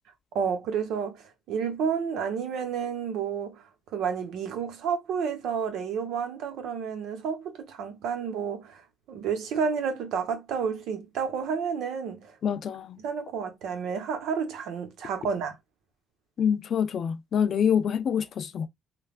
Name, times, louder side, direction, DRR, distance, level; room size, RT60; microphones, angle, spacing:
voice 1, 0.3-3.6 3.9-8.8 9.1-12.4 13.0-15.5, right 6 dB, 80° right, 0.9 m, -30 dB
voice 2, 12.4-13.0 16.4-18.7, left 8 dB, 55° left, 0.4 m, -26 dB
3.2 x 2.2 x 2.3 m
cardioid pair, 95°, 0 cm